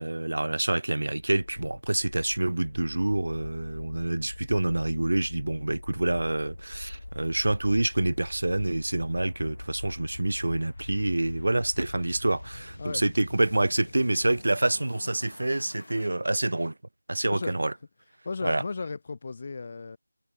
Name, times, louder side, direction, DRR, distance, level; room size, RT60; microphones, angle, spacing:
voice 1, 0.0-16.7 17.1-17.7 18.4-18.6, right 2 dB, 65° right, 0.8 m, -27 dB
sound 1, 1.2-16.1, left 2 dB, 55° left, 1.3 m, -44 dB
voice 2, 18.2-20.0, left 4 dB, 35° left, 0.8 m, -35 dB
figure-of-eight pair, 170°, 0 cm